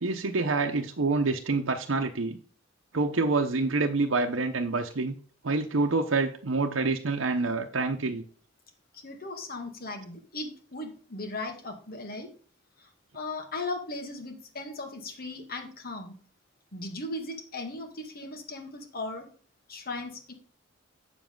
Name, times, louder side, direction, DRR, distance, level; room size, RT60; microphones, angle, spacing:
voice 1, 0.0-2.4 2.9-5.1 5.4-8.2, right 3 dB, 80° right, 3 dB, 0.8 m, -27 dB
voice 2, 8.9-12.3 12.8-12.9 13.1-16.1 16.7-19.3 19.7-20.3, left 2 dB, 50° left, 4 dB, 2.1 m, -37 dB
8.1 x 7.3 x 3.9 m, 0.43 s
head